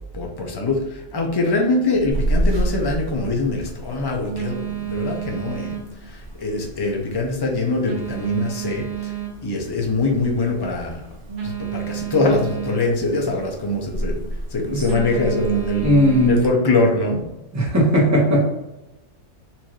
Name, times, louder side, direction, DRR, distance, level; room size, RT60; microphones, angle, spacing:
voice 1, 0.1-5.8 6.1-9.1 9.4-11.0 11.4-14.2 14.5-15.9 16.3-17.3, left 2 dB, 25° left, 0 dB, 0.5 m, -23 dB
Telephone, 2.1-16.5, right 4 dB, 45° right, 0.7 m, -29 dB
voice 2, 15.8-16.5 17.5-18.5, equal, 15° right, -5 dB, 1.1 m, -17 dB
4.4 x 2.7 x 3.1 m, 0.95 s
omnidirectional pair, 1.5 m